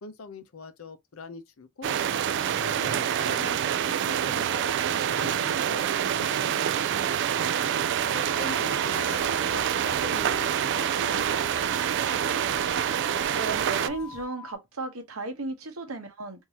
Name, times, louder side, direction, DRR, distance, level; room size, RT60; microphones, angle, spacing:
voice 1, 0.0-2.0 2.6-5.8 6.1-7.5 8.1-11.6 11.9-12.2, left 4 dB, 75° left, 0.7 m, -43 dB
sound 1, 1.8-13.9, right 9 dB, 60° right, 0.3 m, -26 dB
sound 2, 7.4-14.5, left 7 dB, 15° left, 0.3 m, -43 dB
sound 3, 9.0-14.2, equal, 30° right, 1.2 m, -53 dB
voice 2, 13.3-16.4, right 3 dB, 85° right, 1.0 m, -35 dB
3.7 x 2.7 x 2.8 m
head